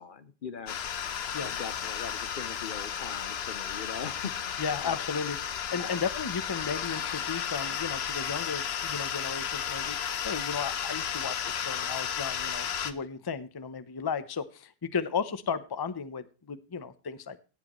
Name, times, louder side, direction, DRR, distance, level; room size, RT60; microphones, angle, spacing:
voice 1, 0.0-5.0 5.8-6.0, left 6 dB, 55° left, 14 dB, 0.8 m, -41 dB
sound 1, 0.7-12.9, left 8 dB, 70° left, 1.0 m, -33 dB
voice 2, 4.6-17.4, left 6 dB, 25° left, 13 dB, 0.6 m, -35 dB
17.5 x 7.7 x 3.0 m, 0.33 s
omnidirectional pair, 1.1 m